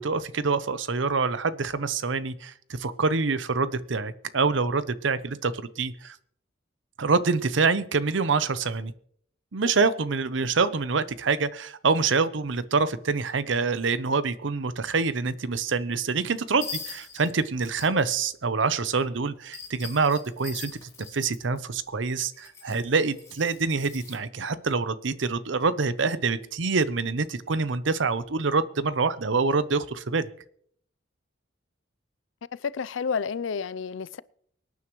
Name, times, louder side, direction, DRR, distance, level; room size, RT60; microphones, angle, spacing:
voice 1, 0.0-6.2 7.0-8.9 9.5-20.7 21.1-30.3, right 4 dB, 75° right, 0.7 m, -26 dB
sound 1, 16.6-18.1 19.5-21.6 22.3-24.2, left 5 dB, 15° left, 3.2 m, -41 dB
voice 2, 32.5-34.2, left 6 dB, 90° left, 0.5 m, -30 dB
24.5 x 9.4 x 3.1 m
head